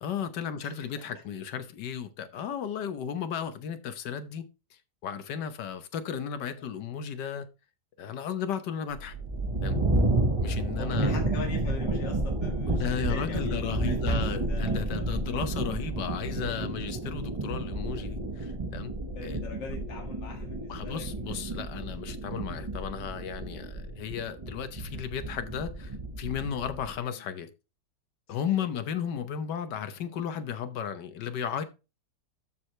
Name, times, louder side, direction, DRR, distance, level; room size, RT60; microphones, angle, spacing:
voice 1, 0.0-4.4 5.0-7.5 8.0-9.1 9.6-9.8 10.4-11.1 12.7-18.9 19.2-19.5 20.7-27.5 28.3-31.6, left 8 dB, 75° left, 1.5 m, -34 dB
sound 1, 8.9-27.0, right 2 dB, 25° right, 0.7 m, -31 dB
voice 2, 10.8-15.1 19.1-21.4 28.5-28.6, left 4 dB, 90° left, 2.4 m, -42 dB
13.0 x 4.8 x 3.2 m
omnidirectional pair, 1.9 m